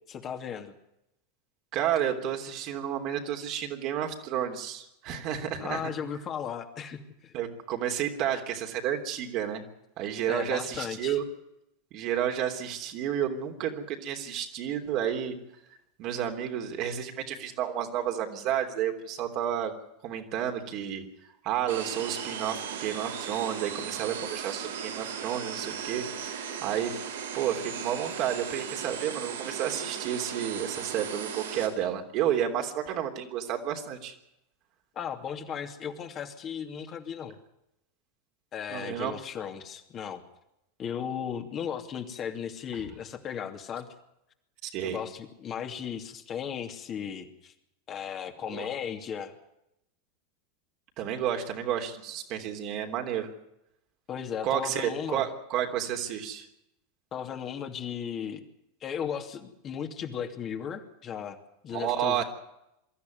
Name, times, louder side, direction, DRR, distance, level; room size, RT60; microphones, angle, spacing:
voice 1, 0.1-0.7 5.6-7.3 10.3-11.2 34.9-37.4 38.5-40.2 40.8-43.9 44.8-47.5 47.9-49.3 54.1-55.2 57.1-58.4 58.8-61.4 61.6-62.2, left 8 dB, 35° left, 5 dB, 2.7 m, -36 dB
voice 2, 1.7-5.9 7.3-9.6 10.0-11.2 11.9-15.3 16.0-19.7 20.0-21.0 21.4-26.9 27.3-34.1 38.7-39.2 44.6-45.0 48.5-48.7 51.0-53.3 54.4-56.5 61.7-62.2, right 10 dB, 50° right, 4 dB, 3.3 m, -31 dB
sound 1, 21.7-31.7, right 7 dB, 75° right, 3.6 m, -37 dB
23.0 x 13.5 x 9.5 m, 0.83 s
hypercardioid pair, 90°, 0 cm